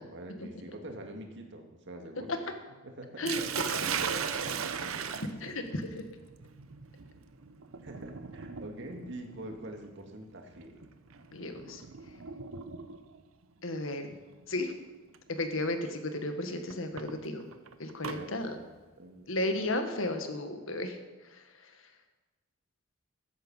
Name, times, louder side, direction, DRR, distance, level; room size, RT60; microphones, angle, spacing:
voice 1, 0.0-2.5 2.8-3.3 3.8-4.5 4.8-5.1 5.4-5.5 7.8-10.8 18.1-18.7 19.0-19.3, right 1 dB, 60° right, 3 dB, 2.0 m, -45 dB
Sink (filling or washing), 3.3-13.2 14.3-14.6 15.1-15.2 16.7-18.2, right 6 dB, 85° right, 0.8 m, -38 dB
voice 2, 5.4-5.8 11.3-11.8 13.6-14.1 14.5-14.7 15.3-17.5 17.8-18.6 19.3-21.0 21.3-21.7, left 1 dB, 70° left, 6 dB, 1.6 m, -34 dB
13.5 x 10.5 x 5.5 m, 1.2 s
head